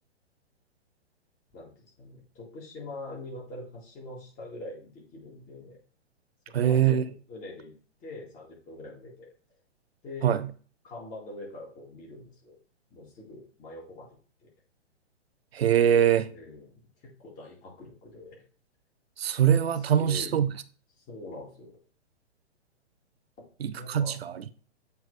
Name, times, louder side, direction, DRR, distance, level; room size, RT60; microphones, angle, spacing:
voice 1, 1.5-5.8 6.6-7.0 7.3-7.7 8.0-9.3 10.0-10.3 10.8-12.6 12.9-14.1 14.4-14.5 16.3-18.4 19.9-20.3 21.1-21.7 23.7-24.2, left 2 dB, 25° left, 2.2 m, -43 dB
voice 2, 6.5-7.0 10.2-10.4 15.5-16.3 19.2-20.5 23.6-24.5, right 9 dB, 60° right, 0.7 m, -23 dB
8.1 x 3.5 x 3.3 m
figure-of-eight pair, 120°, 35 cm